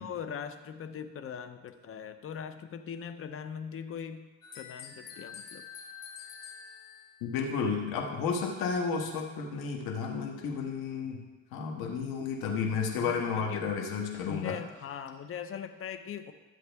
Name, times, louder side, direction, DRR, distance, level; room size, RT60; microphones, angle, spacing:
voice 1, 0.0-4.3 4.5-5.6 13.0-13.6 14.2-16.3, left 7 dB, 40° left, 9 dB, 0.7 m, -40 dB
sound 1, 4.4-7.3, left 7 dB, 65° left, 1.3 m, -47 dB
voice 2, 7.2-11.2 11.5-14.6, left 5 dB, 90° left, 0 dB, 1.5 m, -32 dB
12.5 x 7.9 x 3.5 m, 1.3 s
cardioid pair, 115°, 35 cm